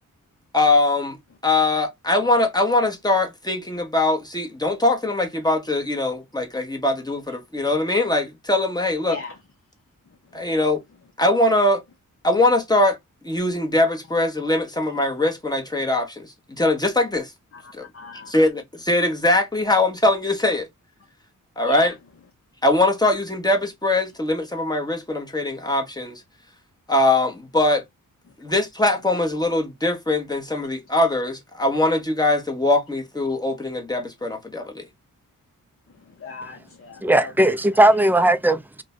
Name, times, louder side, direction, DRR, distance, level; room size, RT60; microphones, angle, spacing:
voice 1, 0.5-1.2 1.4-9.2 10.3-10.8 11.2-11.8 12.2-13.0 13.2-17.3 17.7-17.9 18.1-20.7 21.6-21.9 22.6-26.2 26.9-27.8 28.4-34.9, left 2 dB, 10° left, 1.0 m, -21 dB
voice 2, 9.1-9.4 10.3-10.5 17.5-18.3 21.7-21.9 35.9-37.5, left 4 dB, 40° left, 0.7 m, -38 dB
voice 3, 37.0-38.8, right 1 dB, 5° right, 0.3 m, -17 dB
2.5 x 2.2 x 2.3 m
cardioid pair, 60°, 33 cm